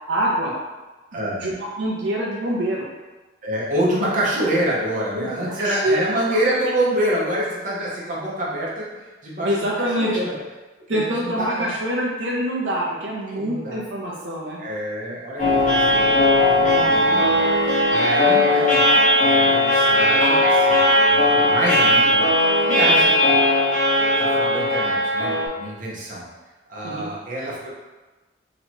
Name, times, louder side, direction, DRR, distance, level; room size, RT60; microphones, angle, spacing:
voice 1, 0.1-0.6 1.1-2.9 5.2-5.3 5.6-6.0 9.4-10.2 10.9-14.6 16.6-17.2 23.0-23.1 26.8-27.1, right 1 dB, 80° right, -4 dB, 0.6 m, -25 dB
voice 2, 1.1-1.4 3.4-9.5 10.0-10.4 10.9-11.7 13.3-13.8 14.6-18.8 19.2-23.4 23.7-26.3 26.7-27.7, right 1 dB, 45° right, -5 dB, 1.0 m, -27 dB
sound 1, 15.4-25.5, left 1 dB, 45° left, 1.2 m, -18 dB
3.0 x 2.8 x 4.3 m, 1.2 s
head